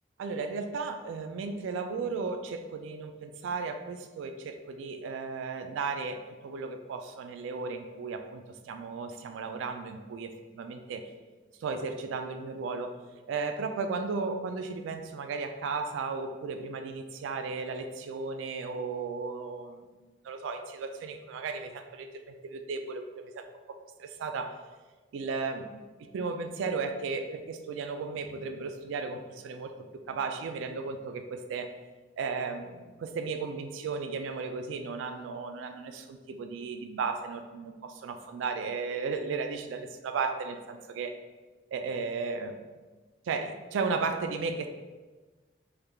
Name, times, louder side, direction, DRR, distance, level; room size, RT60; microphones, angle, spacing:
voice 1, 0.2-11.0 11.6-13.0 13.3-19.8 20.2-23.4 24.0-24.6 25.1-25.8 26.1-29.7 30.1-31.7 32.2-41.1 41.7-42.6 43.3-44.7, right 4 dB, 85° right, 7 dB, 0.3 m, -35 dB
3.4 x 2.3 x 3.2 m, 1.3 s
head